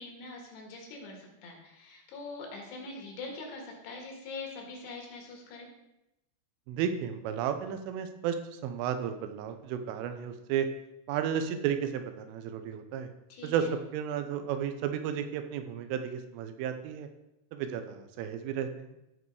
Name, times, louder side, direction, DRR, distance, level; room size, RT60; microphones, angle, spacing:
voice 1, 0.0-5.7 13.3-13.7, left 3 dB, 65° left, 1 dB, 3.5 m, -43 dB
voice 2, 6.7-8.4 8.6-10.7 11.1-13.1 13.4-13.7 13.9-17.1 17.5-18.9, right 8 dB, 90° right, 8 dB, 3.4 m, -33 dB
13.5 x 5.2 x 4.8 m, 0.90 s
omnidirectional pair, 5.5 m